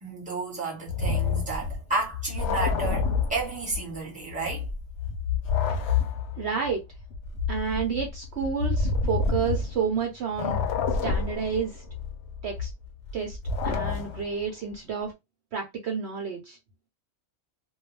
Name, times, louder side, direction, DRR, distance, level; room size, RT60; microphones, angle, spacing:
voice 1, 0.0-4.6, right 3 dB, 5° right, 1.0 m, -32 dB
sound 1, 0.9-4.0 4.3-10.0 10.3-14.4, left 5 dB, 65° left, 0.8 m, -28 dB
voice 2, 6.4-6.8 7.5-10.6 11.0-11.8 12.4-12.7 13.1-13.4 13.6-15.1 15.5-16.6, right 6 dB, 60° right, 0.8 m, -30 dB
2.3 x 2.2 x 3.1 m
omnidirectional pair, 1.4 m